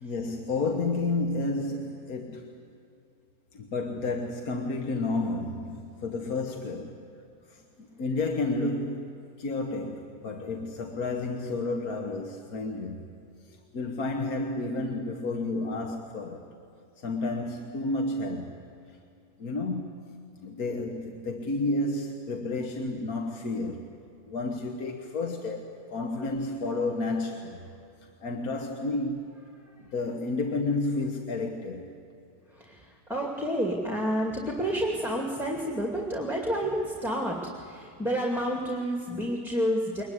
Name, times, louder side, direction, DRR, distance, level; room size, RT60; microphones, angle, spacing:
voice 1, 0.0-2.6 3.5-7.0 8.0-13.0 13.5-16.4 17.0-18.6 19.4-23.9 24.3-27.6 28.2-29.3 29.9-31.9, left 2 dB, 60° left, 1.8 m, -31 dB
voice 2, 32.5-40.0, equal, ahead, 2.2 m, -29 dB
23.0 x 20.5 x 9.7 m
omnidirectional pair, 1.9 m